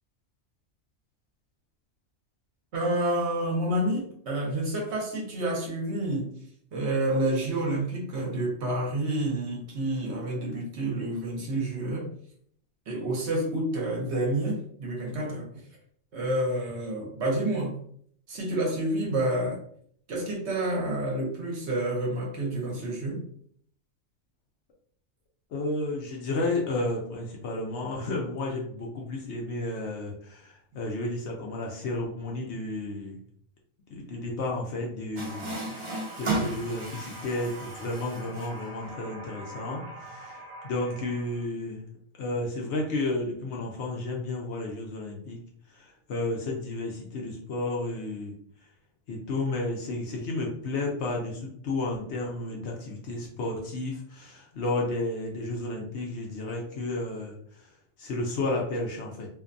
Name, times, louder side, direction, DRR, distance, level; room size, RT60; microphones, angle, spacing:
voice 1, 2.7-6.3 6.7-12.1 12.9-15.6 16.1-17.8 18.3-19.6 20.1-23.2, right 1 dB, 60° right, -2 dB, 0.9 m, -29 dB
voice 2, 25.5-33.2 33.9-41.8 42.2-45.4 45.7-48.3 49.1-57.4 58.0-59.3, left 2 dB, 65° left, -1 dB, 0.8 m, -32 dB
Water tap faucet, 35.2-41.5, right 2 dB, 45° right, 0.4 m, -36 dB
2.5 x 2.1 x 2.5 m, 0.62 s
omnidirectional pair, 1.4 m